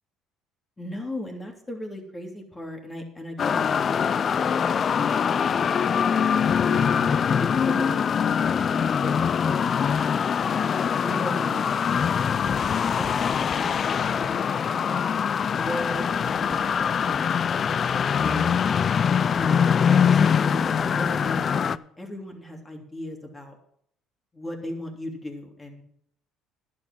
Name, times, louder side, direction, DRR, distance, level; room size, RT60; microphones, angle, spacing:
voice 1, 0.8-4.0 4.4-5.3 5.6-5.9 6.6-9.9 10.8-11.7 12.1-15.2 15.5-16.7 17.0-17.7 18.2-18.6 19.3-19.7 20.0-23.6 24.3-25.8, left 1 dB, 20° left, 2 dB, 3.0 m, -37 dB
sound 1, 3.4-21.8, left 7 dB, 45° left, 0.4 m, -23 dB
11.0 x 8.5 x 6.1 m, 0.69 s
supercardioid pair, 75°, 0 cm